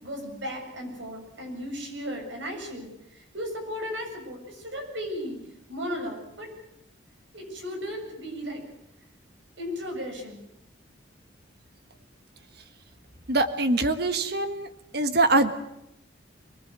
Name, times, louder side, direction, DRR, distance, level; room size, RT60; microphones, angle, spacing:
voice 1, 0.0-2.9 3.3-5.4 5.7-6.5 7.3-8.6 9.6-10.5, equal, 70° right, 3 dB, 7.2 m, -35 dB
voice 2, 13.3-14.7 14.9-15.5, right 2 dB, 55° right, 8 dB, 1.6 m, -23 dB
25.0 x 19.5 x 8.2 m, 0.79 s
head